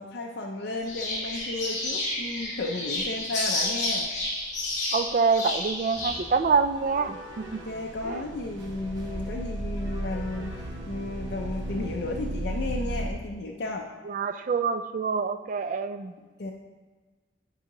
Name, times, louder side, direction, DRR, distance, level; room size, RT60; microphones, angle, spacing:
voice 1, 0.0-4.1 7.5-13.9 16.4-16.5, left 2 dB, 60° left, 0 dB, 0.5 m, -33 dB
sound 1, 0.8-6.2, left 2 dB, 45° left, 1.8 m, -30 dB
voice 2, 4.9-7.6 8.0-8.2 14.1-16.1, right 5 dB, 45° right, 10 dB, 0.3 m, -26 dB
sound 2, 5.9-11.9, equal, 20° right, 1.1 m, -45 dB
sound 3, 6.3-13.1, right 1 dB, 80° right, 0.6 m, -35 dB
9.8 x 4.7 x 2.9 m, 1.3 s
head